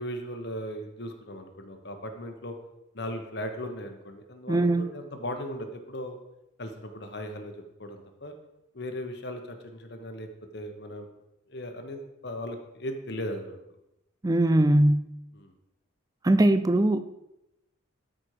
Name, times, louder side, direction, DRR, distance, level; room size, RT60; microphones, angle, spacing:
voice 1, 0.0-2.6 2.9-6.2 6.6-7.5 7.8-8.3 8.7-10.3 10.5-11.1 11.5-13.6 15.3-15.5, equal, 55° left, 5 dB, 1.2 m, -37 dB
voice 2, 4.5-4.9 14.2-15.0 16.2-17.0, right 1 dB, 20° right, 11 dB, 0.5 m, -21 dB
13.0 x 5.3 x 5.0 m, 0.89 s
head